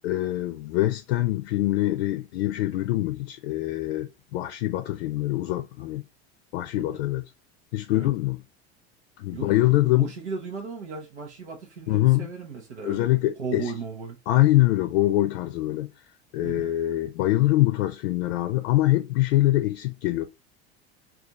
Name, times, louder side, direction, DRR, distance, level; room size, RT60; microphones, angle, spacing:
voice 1, 0.0-6.0 6.5-7.2 7.7-8.4 9.2-10.1 11.9-12.3 12.8-13.7 14.3-15.9 16.3-20.3, left 16 dB, 70° left, 0.5 m, -24 dB
voice 2, 9.3-13.1 13.4-14.2 16.4-16.7, right 5 dB, 90° right, 0.8 m, -36 dB
2.6 x 2.5 x 3.9 m
hypercardioid pair, 80°, 33 cm